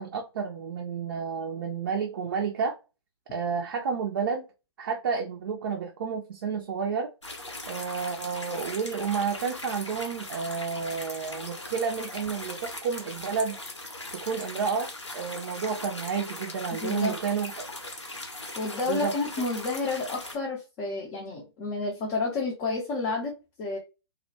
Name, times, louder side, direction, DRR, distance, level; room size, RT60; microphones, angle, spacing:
voice 1, 0.0-2.8 3.3-4.4 4.8-7.1 7.7-13.6 14.2-17.5 18.9-19.1, right 6 dB, 50° right, 0.4 m, -30 dB
sound 1, 7.2-20.4, left 2 dB, 85° left, 0.8 m, -40 dB
voice 2, 16.8-17.2 18.6-23.8, left 3 dB, 25° left, 0.5 m, -30 dB
2.1 x 2.1 x 2.7 m
figure-of-eight pair, 120°, 15 cm